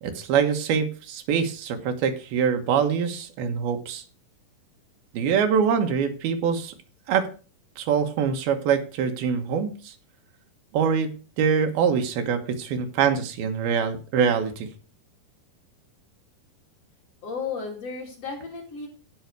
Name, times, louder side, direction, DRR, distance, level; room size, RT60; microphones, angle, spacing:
voice 1, 0.0-4.0 5.1-6.7 7.1-7.3 7.8-9.9 10.7-11.1 11.4-14.7, right 7 dB, 85° right, 6 dB, 3.2 m, -24 dB
voice 2, 17.2-18.9, left 5 dB, 45° left, 0 dB, 3.3 m, -33 dB
15.5 x 5.7 x 4.6 m, 0.37 s
omnidirectional pair, 4.2 m